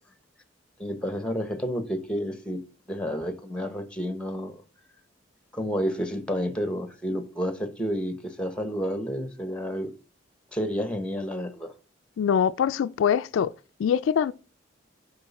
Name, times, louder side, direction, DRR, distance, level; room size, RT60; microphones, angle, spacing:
voice 1, 0.8-2.6 2.9-4.6 5.5-9.9 10.5-11.7, equal, 5° left, 1.0 m, -30 dB
voice 2, 12.2-13.5 13.8-14.3, left 8 dB, 90° left, 0.3 m, -23 dB
7.6 x 5.8 x 4.2 m
head